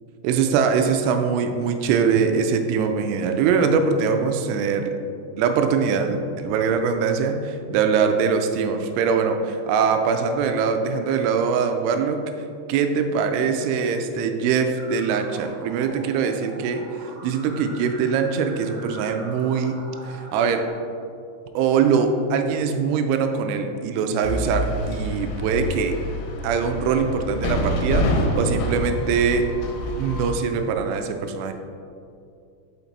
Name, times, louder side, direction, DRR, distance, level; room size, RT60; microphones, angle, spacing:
voice 1, 0.2-4.9 5.4-12.2 12.7-16.8 17.2-19.8 20.0-20.7 21.6-26.0 26.4-29.5 30.0-31.5, right 6 dB, 85° right, 6 dB, 2.9 m, -22 dB
sound 1, 14.8-20.7, right 2 dB, 70° right, 2.6 m, -43 dB
sound 2, 24.2-30.3, equal, 80° left, 2.9 m, -26 dB
5.9 x 5.7 x 4.0 m, 2.5 s
omnidirectional pair, 5.5 m